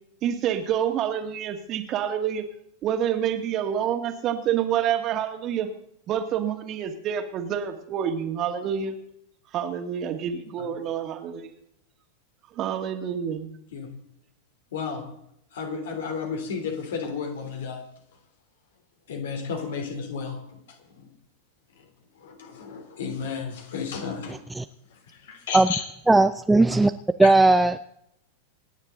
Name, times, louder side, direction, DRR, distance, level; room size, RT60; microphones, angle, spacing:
voice 1, 0.2-2.4 2.8-5.7 6.1-8.9 9.5-11.6 12.5-13.5, right 9 dB, 35° right, 2.1 m, -27 dB
voice 2, 14.7-15.0 15.5-17.8 19.1-20.4 22.2-24.4 25.1-25.8 27.2-27.3, left 5 dB, 60° left, 3.6 m, -32 dB
voice 3, 26.1-26.9 27.2-27.8, right 2 dB, 5° right, 0.5 m, -17 dB
27.0 x 9.7 x 4.0 m
figure-of-eight pair, 90°, 0 cm